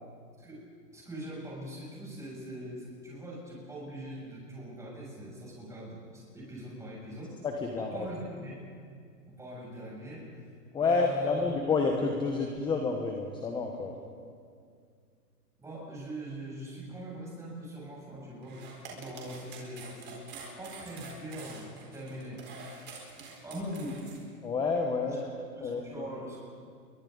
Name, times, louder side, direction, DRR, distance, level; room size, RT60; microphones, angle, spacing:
voice 1, 0.9-7.4 7.8-8.6 9.3-10.3 10.8-11.5 15.6-18.6 18.9-20.2 20.6-22.4 23.4-24.0 25.1-25.2 25.5-26.4, right 1 dB, 5° right, -5 dB, 7.5 m, -42 dB
voice 2, 7.6-8.0 10.7-13.9 24.4-25.3 25.6-26.0, left 4 dB, 10° left, 3 dB, 1.1 m, -29 dB
sound 1, 18.4-24.2, right 4 dB, 20° right, 4.4 m, -46 dB
29.0 x 23.5 x 4.0 m, 2.2 s
hypercardioid pair, 140°, 48 cm